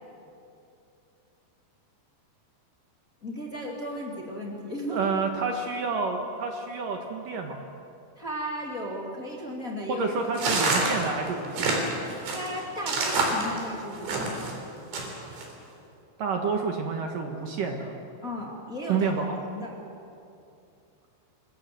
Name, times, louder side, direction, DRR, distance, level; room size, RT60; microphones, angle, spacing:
voice 1, 3.2-5.1 8.2-10.1 12.3-14.4 18.2-19.1 19.4-19.7, equal, 25° left, -2 dB, 2.2 m, -35 dB
voice 2, 4.9-7.6 9.9-11.8 16.2-17.9 18.9-19.3, right 4 dB, 60° right, 3 dB, 2.7 m, -29 dB
sound 1, 10.4-14.5 14.9-15.5, right 3 dB, 80° right, 6.0 m, -27 dB
26.0 x 21.0 x 7.8 m, 2.7 s
omnidirectional pair, 5.0 m